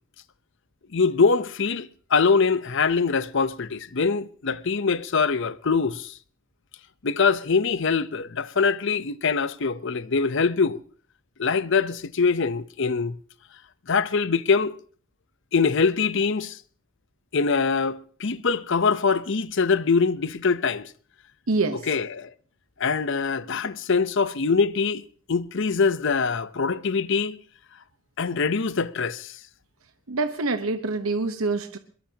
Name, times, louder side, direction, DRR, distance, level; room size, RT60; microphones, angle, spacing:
voice 1, 0.9-6.2 7.0-10.8 11.4-13.2 13.9-14.8 15.5-16.6 17.3-20.9 21.9-22.3 22.8-25.0 25.3-27.4 28.2-29.4, left 5 dB, 60° left, 0.8 m, -23 dB
voice 2, 21.5-21.9 30.1-31.8, right 3 dB, 75° right, 1.0 m, -26 dB
22.0 x 22.0 x 2.9 m
head